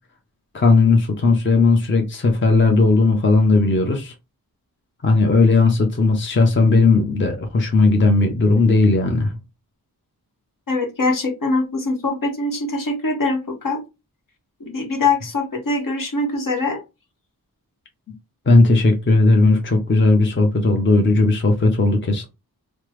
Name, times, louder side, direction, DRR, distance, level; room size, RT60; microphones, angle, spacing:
voice 1, 0.5-4.1 5.0-9.3 18.5-22.3, left 3 dB, 30° left, 0.6 m, -16 dB
voice 2, 10.7-13.8 14.6-16.8, left 3 dB, 60° left, 1.0 m, -23 dB
3.2 x 2.0 x 3.1 m
wide cardioid pair, 55°, 37 cm